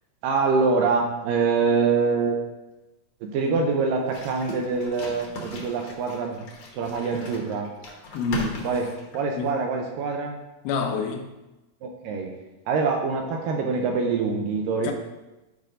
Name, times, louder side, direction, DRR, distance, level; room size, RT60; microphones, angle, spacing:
voice 1, 0.2-2.4 3.2-6.4 6.7-7.7 8.6-10.4 11.8-12.3 12.7-14.9, right 4 dB, 80° right, 2 dB, 2.1 m, -25 dB
sound 1, 4.1-9.5, left 2 dB, 65° left, 1.4 m, -38 dB
voice 2, 8.1-8.7 9.4-9.6 10.6-11.3 14.8-14.9, left 4 dB, 90° left, 4 dB, 2.5 m, -27 dB
12.0 x 5.2 x 2.6 m, 1.0 s
omnidirectional pair, 4.2 m